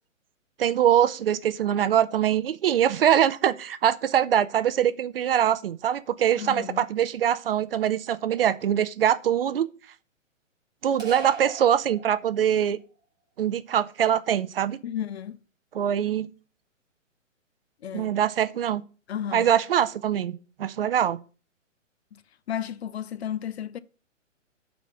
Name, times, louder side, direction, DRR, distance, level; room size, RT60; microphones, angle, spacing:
voice 1, 0.6-9.7 10.8-12.8 13.4-14.8 15.7-16.3 17.9-18.8 19.3-20.3 20.6-21.2, right 10 dB, 50° right, 0.5 m, -23 dB
voice 2, 6.4-6.8 14.8-15.4 17.8-18.1 19.1-19.5 22.1-22.2 22.5-23.8, left 10 dB, 55° left, 0.6 m, -33 dB
sound 1, 11.0-12.7, right 3 dB, 10° right, 1.3 m, -40 dB
7.2 x 4.2 x 6.5 m
hypercardioid pair, 135°, 39 cm